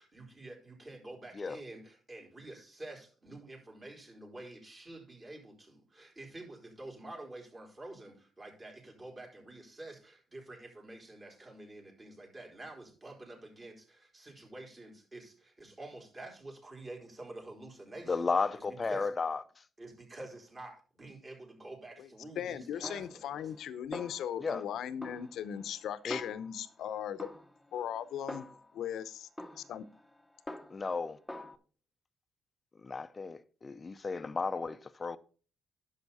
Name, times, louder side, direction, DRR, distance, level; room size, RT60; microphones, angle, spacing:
voice 1, 0.0-19.1 19.8-23.3, right 2 dB, 30° right, 4.0 m, -48 dB
voice 2, 18.1-19.4 24.4-24.6 26.0-26.2 30.7-31.2 32.8-35.2, left 4 dB, 30° left, 0.6 m, -34 dB
voice 3, 22.4-27.3 27.7-28.4 28.7-29.3 29.6-29.8, left 9 dB, 75° left, 0.8 m, -38 dB
Snare drum, 22.8-23.7 23.9-24.7 25.0-26.8 27.2-28.9 29.4-31.0 31.3-31.6, left 1 dB, 5° left, 1.0 m, -46 dB
10.5 x 6.8 x 4.1 m
cardioid pair, 90°, 0 cm